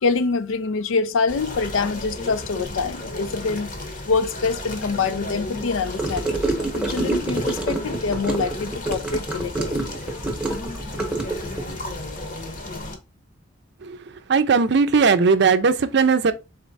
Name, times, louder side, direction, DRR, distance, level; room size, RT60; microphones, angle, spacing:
voice 1, 0.0-3.7 4.1-6.4 6.7-9.7, left 4 dB, 80° left, 0.4 m, -25 dB
sound 1, 1.3-13.0, left 2 dB, 45° left, 0.9 m, -33 dB
Gurgling / Car passing by / Sink (filling or washing), 6.0-11.7, right 2 dB, 5° right, 0.9 m, -27 dB
voice 2, 14.3-16.3, right 5 dB, 60° right, 0.5 m, -18 dB
4.0 x 3.1 x 4.0 m
head